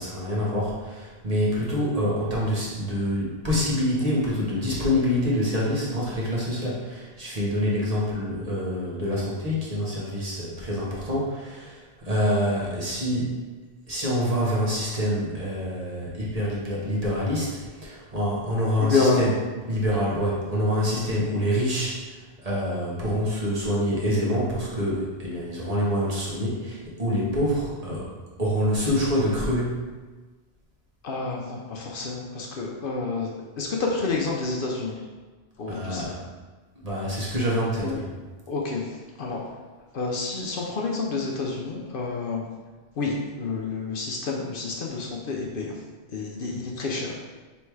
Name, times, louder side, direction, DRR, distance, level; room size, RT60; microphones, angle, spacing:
voice 1, 0.0-13.4 13.9-19.3 19.7-22.0 22.4-28.1 28.4-29.8 35.7-36.1 36.8-38.0, equal, 40° right, -6 dB, 1.1 m, -26 dB
voice 2, 18.8-19.2 31.0-33.3 33.6-35.0 35.6-36.1 37.8-38.0 38.5-38.8 39.2-39.4 39.9-42.5 43.0-45.7 46.1-47.1, left 3 dB, 60° left, -1 dB, 0.8 m, -28 dB
3.4 x 3.1 x 4.6 m, 1.3 s
omnidirectional pair, 1.1 m